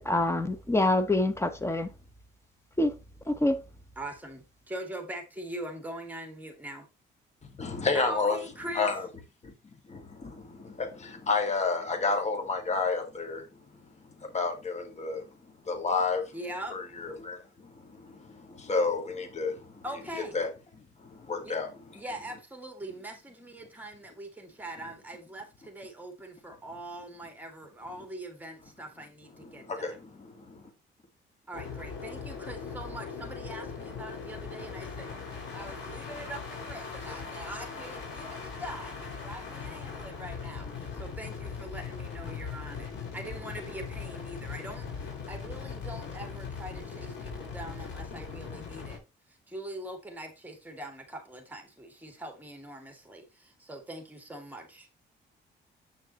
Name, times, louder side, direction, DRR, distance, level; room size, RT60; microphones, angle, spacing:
voice 1, 0.0-1.9 2.8-2.9 3.3-3.6, left 2 dB, 15° left, 1.2 m, -26 dB
voice 2, 4.0-6.9 7.9-8.9 16.3-16.8 19.8-20.4 21.4-21.6 21.9-30.0 31.5-49.0 49.5-54.9, right 1 dB, 10° right, 2.6 m, -42 dB
voice 3, 7.6-8.4 8.8-9.1 9.4-9.5 9.9-13.5 14.3-15.2 15.7-16.3 16.7-19.8 20.3-20.5 21.0-21.7 29.5-30.6, left 4 dB, 35° left, 1.9 m, -31 dB
sound 1, 31.5-49.0, left 5 dB, 70° left, 4.9 m, -40 dB
8.3 x 6.3 x 3.1 m
cardioid pair, 90°, 20 cm